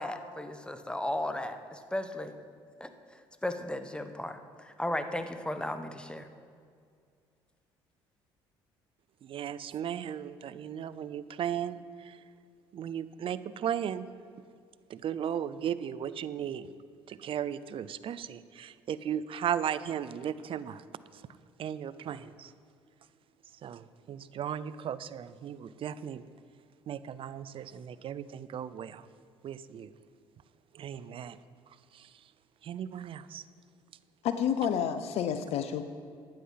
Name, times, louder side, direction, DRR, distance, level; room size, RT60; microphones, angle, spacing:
voice 1, 0.0-2.3 2.8-2.9 3.4-6.3, left 1 dB, 10° left, 8 dB, 1.1 m, -35 dB
voice 2, 9.2-12.2 12.7-14.1 14.9-16.7 17.1-20.8 21.6-22.5 23.6-26.2 26.9-29.1 29.4-29.9 30.7-31.4 31.9-32.1 32.6-33.4, right 9 dB, 50° right, 16 dB, 0.6 m, -36 dB
voice 3, 34.2-35.8, left 8 dB, 65° left, 10 dB, 0.6 m, -29 dB
12.0 x 9.3 x 5.7 m, 2.2 s
hypercardioid pair, 65°, 11 cm